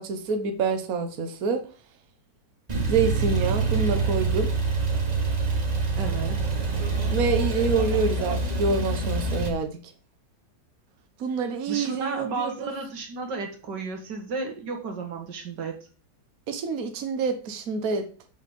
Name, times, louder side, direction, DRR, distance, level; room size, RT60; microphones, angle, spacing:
voice 1, 0.0-1.6 2.9-4.5 7.1-9.8 11.2-12.7 16.5-18.0, right 4 dB, 60° right, 6 dB, 1.4 m, -27 dB
Male speech man speaking / Car / Idling, 2.7-9.5, right 3 dB, 25° right, 1.3 m, -26 dB
voice 2, 5.9-6.5 11.7-15.8, right 4 dB, 85° right, 3 dB, 2.2 m, -33 dB
6.5 x 6.5 x 5.2 m, 0.38 s
omnidirectional pair, 1.8 m